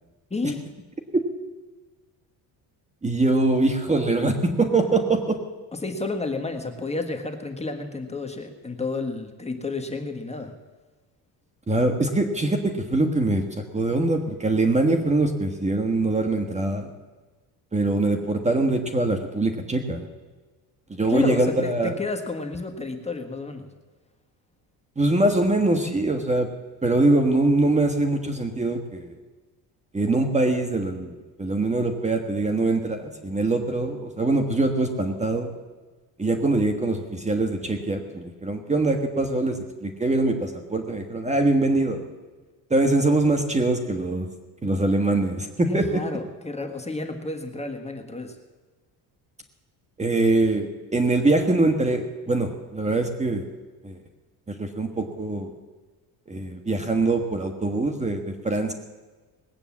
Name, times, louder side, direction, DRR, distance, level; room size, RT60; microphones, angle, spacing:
voice 1, 0.3-0.7 5.8-10.6 21.1-23.7 45.7-48.4, left 3 dB, 15° left, 4 dB, 1.6 m, -31 dB
voice 2, 3.0-5.4 11.7-16.9 17.7-20.0 20.9-21.9 25.0-26.5 26.8-29.2 29.9-35.5 36.2-42.1 42.7-44.3 44.6-46.0 50.0-53.5 53.8-54.0 54.5-55.5 56.3-58.7, right 2 dB, 15° right, 5 dB, 1.4 m, -23 dB
20.0 x 8.9 x 7.3 m, 1.3 s
cardioid pair, 110°, 42 cm